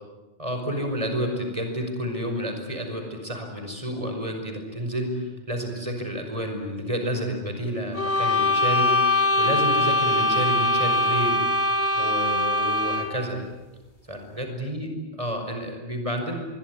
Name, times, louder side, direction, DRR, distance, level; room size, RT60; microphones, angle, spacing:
voice 1, 0.4-11.3 12.0-13.4 14.1-16.3, equal, 30° right, 4 dB, 5.5 m, -30 dB
sound 1, 7.9-13.2, left 1 dB, 75° left, 2.8 m, -22 dB
25.0 x 22.5 x 9.9 m, 1.1 s
omnidirectional pair, 1.1 m